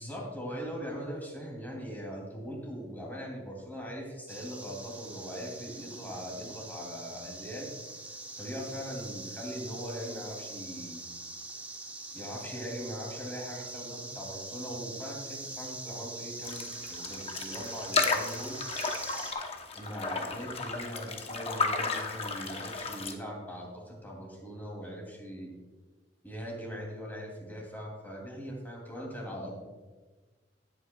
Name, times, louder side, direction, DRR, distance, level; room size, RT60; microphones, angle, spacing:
voice 1, 0.0-7.7 8.4-11.0 12.1-18.6 19.8-25.5 26.2-29.6, equal, 10° left, -1 dB, 2.8 m, -40 dB
sound 1, 4.3-19.3, right 2 dB, 10° right, 0.9 m, -43 dB
sound 2, 16.4-23.1, left 4 dB, 35° left, 0.9 m, -33 dB
17.0 x 8.6 x 2.3 m, 1.3 s
head